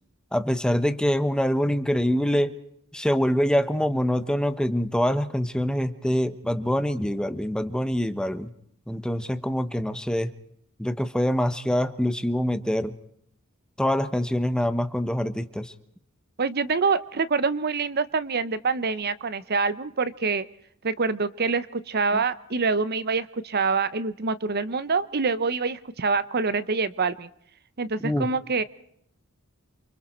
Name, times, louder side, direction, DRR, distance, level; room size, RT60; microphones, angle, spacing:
voice 1, 0.3-2.5 2.9-8.5 8.9-10.3 10.8-12.9 13.8-15.7 22.1-22.2 28.0-28.3, equal, 5° left, 11 dB, 1.0 m, -25 dB
voice 2, 16.4-20.5 20.8-27.3 27.8-28.6, right 4 dB, 45° right, 15 dB, 0.9 m, -26 dB
28.5 x 25.5 x 4.4 m, 0.68 s
head